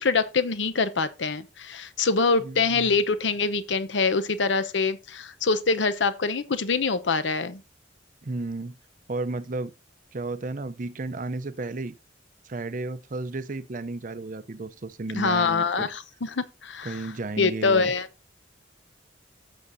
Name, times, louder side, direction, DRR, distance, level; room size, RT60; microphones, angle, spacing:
voice 1, 0.0-7.6 15.2-17.1 17.4-18.1, left 4 dB, 80° left, 0.8 m, -25 dB
voice 2, 2.4-2.9 8.2-8.8 9.1-9.7 10.1-11.9 12.4-15.9 16.8-17.9, right 3 dB, 45° right, 0.6 m, -33 dB
16.5 x 6.4 x 2.7 m
head